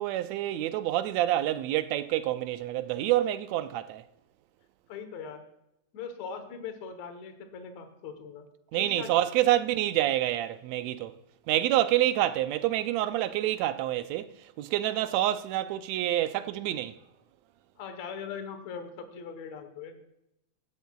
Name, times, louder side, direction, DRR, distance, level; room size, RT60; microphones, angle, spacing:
voice 1, 0.0-4.0 8.7-11.1 11.5-16.9, right 13 dB, 80° right, 1.7 m, -27 dB
voice 2, 4.9-5.4 5.9-8.5 8.7-9.2 17.8-20.0, left 6 dB, 70° left, 2.4 m, -40 dB
16.5 x 11.5 x 2.3 m
omnidirectional pair, 3.3 m